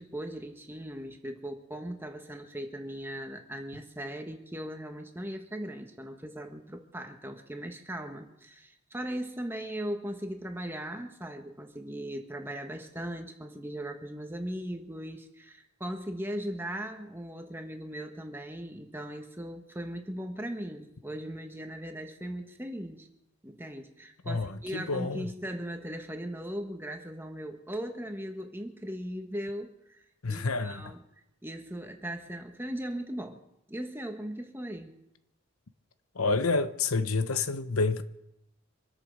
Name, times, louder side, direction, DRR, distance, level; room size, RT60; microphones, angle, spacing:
voice 1, 0.0-23.1 23.4-30.0 30.3-31.0 31.4-33.4 33.7-34.9, equal, 10° right, 1.4 m, -38 dB
voice 2, 24.2-25.3 30.2-30.9 36.1-38.0, left 3 dB, 90° left, 1.0 m, -29 dB
25.5 x 8.5 x 6.6 m
head